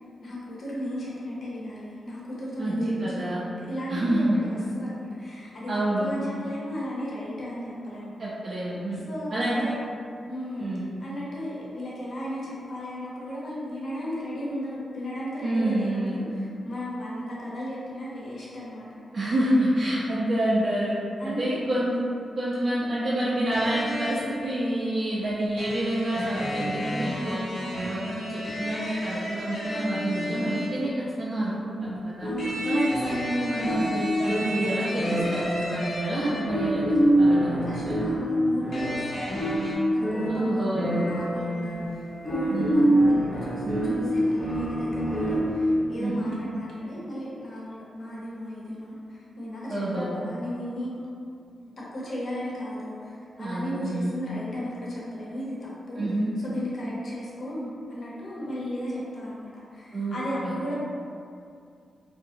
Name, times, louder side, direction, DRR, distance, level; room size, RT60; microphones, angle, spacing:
voice 1, 0.2-2.9 3.2-8.2 9.1-9.8 10.3-10.7 11.0-18.9 19.9-20.2 21.2-21.7 27.6-27.9 32.2-33.0 37.4-51.0 51.9-56.0 56.4-60.7, equal, 50° left, -7 dB, 0.7 m, -35 dB
voice 2, 2.6-3.4 3.9-4.4 5.7-6.1 8.2-9.0 9.3-9.6 10.6-10.9 15.4-16.2 19.1-20.9 21.2-22.0 22.3-27.4 27.7-30.9 31.2-32.3 32.6-36.9 37.2-38.0 40.3-40.9 42.5-42.9 43.6-44.0 46.0-46.3 49.7-50.1 53.4-54.1 56.0-56.3 59.9-60.5, right 1 dB, 45° right, -9 dB, 0.4 m, -28 dB
sound 1, 23.5-24.4 25.6-30.9 32.4-36.7 38.7-39.8, equal, 85° left, 1.1 m, -33 dB
sound 2, 32.2-45.8, right 1 dB, 10° left, 0.6 m, -26 dB
2.8 x 2.4 x 2.6 m, 2.4 s
wide cardioid pair, 130°, 0 cm